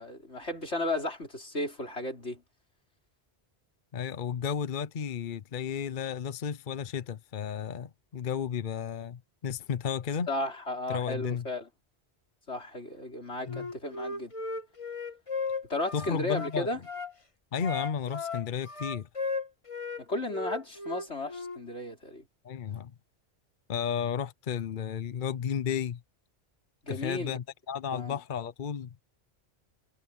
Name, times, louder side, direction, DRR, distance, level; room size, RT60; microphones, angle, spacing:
voice 1, 0.0-2.4 10.3-11.7 12.5-14.3 15.7-16.8 20.0-22.2 26.8-27.4 27.9-28.2, left 2 dB, 90° left, 5.6 m, -34 dB
voice 2, 3.9-10.3 10.9-11.5 13.5-13.7 15.9-16.7 17.5-19.1 22.4-22.9 23.7-26.0 26.9-28.9, left 7 dB, 50° left, 0.9 m, -33 dB
Wind instrument woodwind instrument, 13.4-17.1 17.6-20.0 20.3-21.6, left 4 dB, 30° left, 1.5 m, -36 dB
omnidirectional pair, 1.1 m